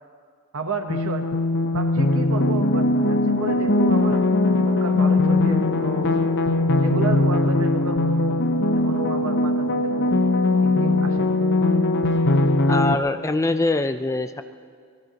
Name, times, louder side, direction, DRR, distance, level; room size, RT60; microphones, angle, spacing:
voice 1, 0.5-1.3 1.7-4.2 4.5-6.3 6.8-8.4 8.7-10.3 10.6-11.4, right 3 dB, 65° right, 6 dB, 1.0 m, -32 dB
sound 1, 0.9-12.9, left 2 dB, 55° left, 0.8 m, -20 dB
voice 2, 12.7-14.4, left 2 dB, 15° left, 9 dB, 0.4 m, -23 dB
24.0 x 20.0 x 2.9 m, 2.1 s
head